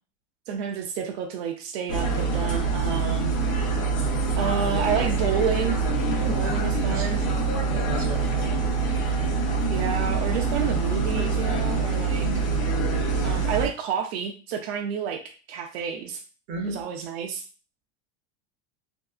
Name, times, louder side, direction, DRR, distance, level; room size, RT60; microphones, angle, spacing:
voice 1, 0.5-3.3 4.4-5.8 6.3-7.2 9.7-12.5 13.2-15.2 15.5-16.2 16.7-17.4, right 7 dB, 80° right, 4 dB, 0.5 m, -30 dB
sound 1, 1.9-13.7, right 4 dB, 45° left, 0.6 m, -25 dB
voice 2, 6.2-6.6 6.9-7.3 7.7-8.5 16.5-16.8, right 2 dB, 40° right, 0 dB, 0.8 m, -34 dB
2.7 x 2.3 x 2.3 m, 0.36 s
cardioid pair, 175°, 31 cm